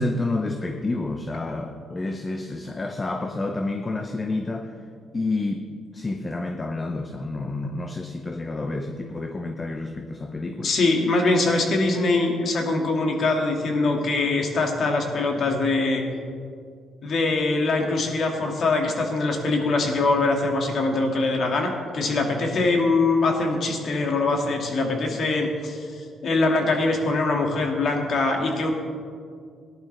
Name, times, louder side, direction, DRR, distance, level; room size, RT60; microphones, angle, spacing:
voice 1, 0.0-4.7 5.1-5.6 5.9-10.7, left 2 dB, 25° left, 6 dB, 0.8 m, -29 dB
voice 2, 10.6-16.0 17.0-28.7, left 3 dB, 55° left, 2 dB, 2.0 m, -23 dB
18.0 x 11.0 x 3.3 m, 2.2 s
cardioid pair, 90°, 0 cm